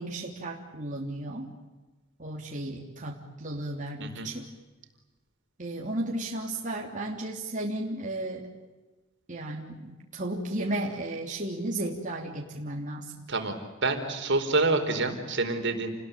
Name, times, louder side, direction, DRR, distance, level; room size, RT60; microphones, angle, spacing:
voice 1, 0.0-1.5 2.2-4.4 5.6-8.5 9.3-13.1, right 1 dB, 40° right, -1 dB, 3.3 m, -34 dB
voice 2, 4.0-4.3 13.3-13.5 13.8-15.9, right 3 dB, 60° right, 6 dB, 4.5 m, -27 dB
29.5 x 21.0 x 9.2 m, 1.2 s
head